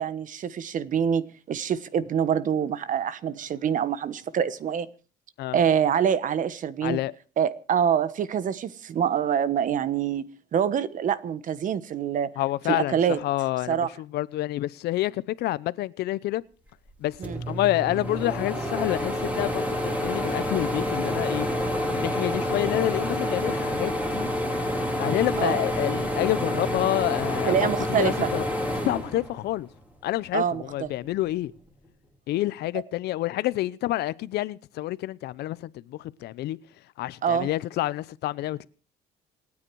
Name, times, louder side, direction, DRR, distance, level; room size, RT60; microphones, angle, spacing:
voice 1, 0.0-4.9 5.5-7.0 7.4-12.3 12.7-13.2 13.7-13.9 17.2-17.4 25.4-25.6 27.5-28.3 30.3-30.9 37.2-37.5, right 8 dB, 50° right, 1.2 m, -25 dB
voice 2, 6.8-7.1 12.4-16.4 17.0-17.2 17.5-21.5 21.9-24.3 25.0-28.5 28.8-29.7 30.0-31.5 32.3-36.6 37.0-38.7, left 15 dB, 75° left, 0.8 m, -28 dB
sound 1, 16.9-17.0 17.2-29.8 30.3-31.4, equal, 10° right, 4.2 m, -28 dB
27.0 x 9.7 x 4.7 m
cardioid pair, 110°, 17 cm